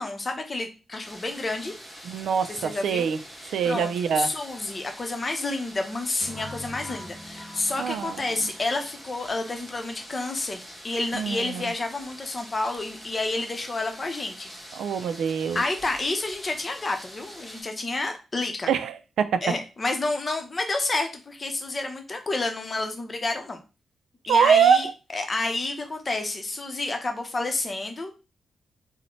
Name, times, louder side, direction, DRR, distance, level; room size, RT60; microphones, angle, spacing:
voice 1, 0.0-1.7 2.1-2.2 2.5-3.1 3.4-14.5 15.5-18.7 19.4-23.6 24.3-24.9 25.1-28.1, left 2 dB, 35° left, 0.7 m, -30 dB
sound 1, 1.0-17.6, equal, 5° right, 1.9 m, -45 dB
voice 2, 2.0-3.2 3.5-4.3 7.8-8.2 11.1-11.6 14.7-15.6 18.7-19.5 24.3-24.9, right 7 dB, 85° right, 0.3 m, -23 dB
sound 2, 6.2-9.1, left 1 dB, 35° right, 1.1 m, -43 dB
3.9 x 2.1 x 3.0 m
cardioid pair, 80°, 0 cm